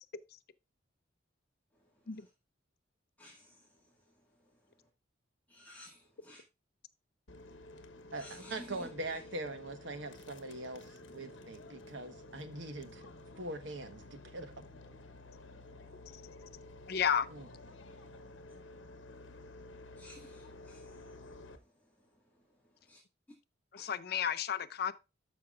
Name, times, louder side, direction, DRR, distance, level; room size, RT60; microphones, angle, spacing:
voice 1, 3.2-3.8 5.5-6.4 8.1-8.9 20.0-21.2 22.9-23.0 23.8-23.9, left 1 dB, 10° left, 1.8 m, -54 dB
sound 1, 7.3-21.6, left 2 dB, 75° left, 1.1 m, -52 dB
voice 2, 8.1-13.1 13.4-14.5 17.3-17.4, right 2 dB, 70° right, 1.2 m, -42 dB
voice 3, 16.9-17.3 23.7-24.9, left 8 dB, 55° left, 0.5 m, -32 dB
12.5 x 5.8 x 2.4 m
head